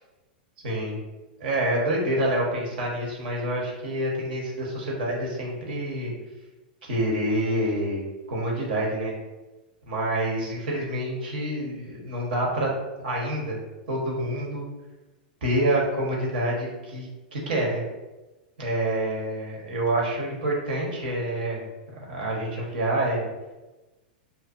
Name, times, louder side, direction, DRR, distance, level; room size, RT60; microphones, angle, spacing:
voice 1, 0.6-1.0 1.4-6.1 6.8-9.1 9.9-12.7 13.0-13.6 13.9-14.6 15.4-17.8 18.6-21.7 22.1-23.2, right 1 dB, 70° right, -2 dB, 0.8 m, -27 dB
2.5 x 2.2 x 2.3 m, 1.1 s
hypercardioid pair, 115°, 5 cm